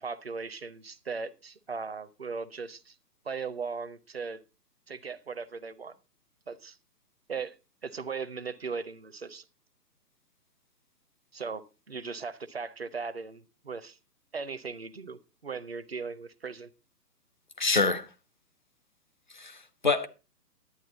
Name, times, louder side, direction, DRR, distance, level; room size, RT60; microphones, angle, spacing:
voice 1, 0.0-3.0 3.2-4.4 4.9-6.0 6.5-6.8 7.3-7.5 7.8-9.5 11.3-14.0 14.3-16.7, right 5 dB, 40° right, 0.5 m, -38 dB
voice 2, 17.6-18.1 19.3-20.1, left 3 dB, 30° left, 0.5 m, -27 dB
11.0 x 8.8 x 3.9 m
figure-of-eight pair, 135°, 49 cm